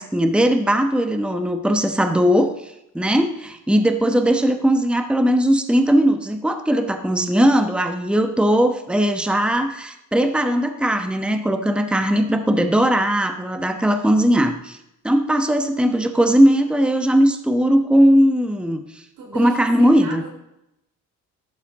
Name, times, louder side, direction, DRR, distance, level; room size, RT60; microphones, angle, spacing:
voice 1, 0.0-14.8 15.0-18.8 19.3-20.2, equal, 5° right, 7 dB, 1.1 m, -19 dB
voice 2, 19.2-20.3, right 3 dB, 85° right, 1 dB, 4.1 m, -35 dB
14.0 x 12.0 x 3.7 m, 0.86 s
cardioid pair, 90°, 30 cm